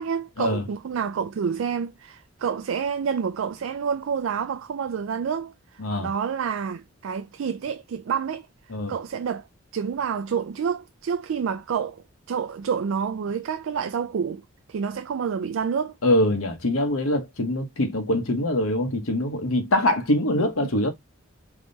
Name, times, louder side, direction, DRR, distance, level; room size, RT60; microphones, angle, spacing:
voice 1, 0.0-5.5 6.0-8.5 8.9-9.5 9.7-14.4 14.7-16.0 20.6-20.7, right 6 dB, 75° right, 0.3 m, -28 dB
voice 2, 16.0-20.9, left 1 dB, 85° left, 1.1 m, -23 dB
3.6 x 3.0 x 4.0 m
head